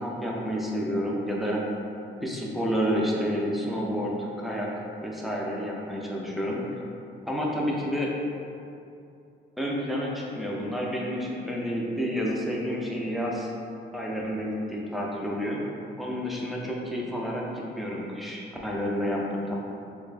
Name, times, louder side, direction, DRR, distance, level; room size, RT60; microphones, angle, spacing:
voice 1, 0.0-1.6 2.2-4.7 5.0-6.8 7.3-8.1 9.6-13.5 13.9-15.6 16.0-19.5, equal, ahead, -3 dB, 0.5 m, -29 dB
3.0 x 2.5 x 3.3 m, 2.6 s
cardioid pair, 90°, 20 cm